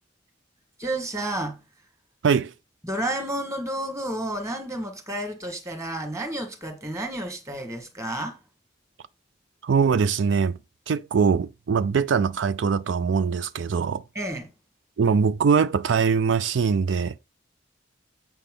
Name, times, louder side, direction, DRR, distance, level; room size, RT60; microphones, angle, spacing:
voice 1, 0.8-1.6 2.8-8.4 14.1-14.5, right 1 dB, 15° right, 1.6 m, -31 dB
voice 2, 9.6-10.6 10.9-14.0 15.0-17.2, right 5 dB, 70° right, 0.4 m, -22 dB
8.5 x 5.7 x 3.8 m
head